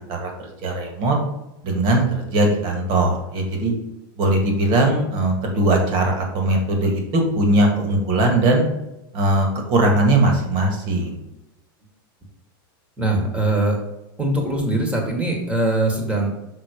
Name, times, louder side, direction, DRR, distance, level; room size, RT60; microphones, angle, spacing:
voice 1, 0.1-1.2 1.6-3.7 4.2-8.6 9.1-11.2, right 2 dB, 45° right, 2 dB, 1.8 m, -20 dB
voice 2, 13.0-13.8 14.2-16.3, right 2 dB, 10° right, 1 dB, 1.5 m, -21 dB
6.3 x 3.8 x 5.1 m, 0.91 s
supercardioid pair, 140°, 12 cm